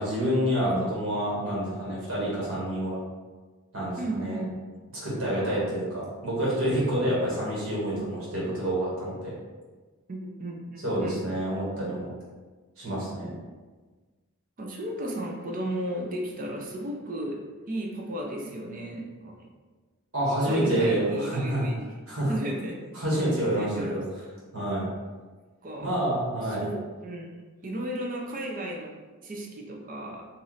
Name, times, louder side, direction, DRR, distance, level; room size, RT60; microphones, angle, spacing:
voice 1, 0.0-3.0 3.7-4.4 5.0-9.3 10.8-12.1 12.8-13.3 20.1-21.6 22.1-22.3 22.9-24.0 24.5-24.9 25.8-26.6, right 1 dB, 70° right, -7 dB, 1.5 m, -28 dB
voice 2, 4.0-4.6 7.1-7.2 10.1-11.2 14.6-19.5 20.4-21.9 22.2-22.8 23.5-24.0 25.6-25.9 26.4-27.3 27.6-30.3, right 1 dB, 40° right, 0 dB, 0.5 m, -34 dB
3.1 x 2.6 x 3.9 m, 1.3 s
head